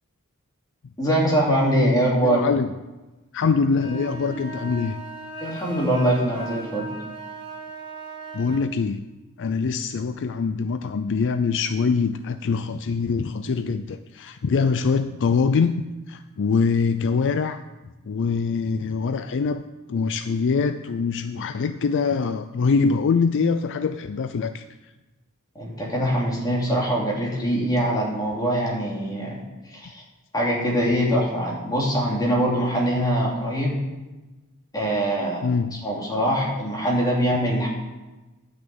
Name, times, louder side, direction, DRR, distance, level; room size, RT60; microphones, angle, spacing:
voice 1, 1.0-2.5 5.4-6.9 25.5-29.4 29.7-30.0 30.3-33.7 34.7-35.5 35.8-37.7, equal, 20° left, -4 dB, 2.9 m, -23 dB
voice 2, 2.2-2.7 3.3-5.0 8.3-9.0 9.4-15.7 16.1-17.6 18.1-19.6 19.9-24.6 35.4-35.8, left 5 dB, 55° left, 10 dB, 0.4 m, -23 dB
sound 1, 3.7-8.7, right 2 dB, 20° right, 2.0 m, -37 dB
10.5 x 6.2 x 7.8 m, 1.1 s
head